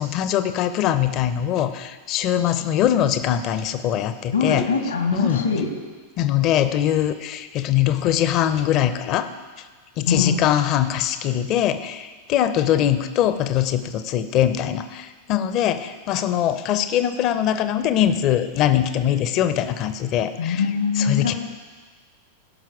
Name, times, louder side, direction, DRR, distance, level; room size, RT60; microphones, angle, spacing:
voice 1, 0.0-4.6 5.1-5.4 6.2-9.3 10.0-20.6 21.0-21.3, left 11 dB, 40° left, 12 dB, 0.6 m, -22 dB
voice 2, 4.3-5.7 10.1-10.4 20.4-21.3, left 5 dB, 75° left, 4 dB, 1.6 m, -22 dB
16.5 x 5.9 x 4.8 m, 1.4 s
figure-of-eight pair, 90°, 0 cm